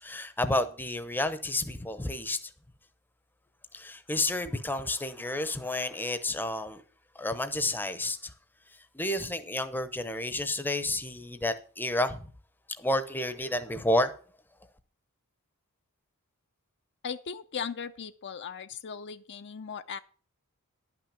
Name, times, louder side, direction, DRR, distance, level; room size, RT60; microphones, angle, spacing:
voice 1, 0.0-2.5 3.7-6.8 7.1-8.3 8.7-12.3 12.8-14.1, left 1 dB, 10° left, 0.8 m, -30 dB
voice 2, 17.0-20.0, left 6 dB, 50° left, 0.6 m, -38 dB
11.0 x 6.0 x 6.9 m
head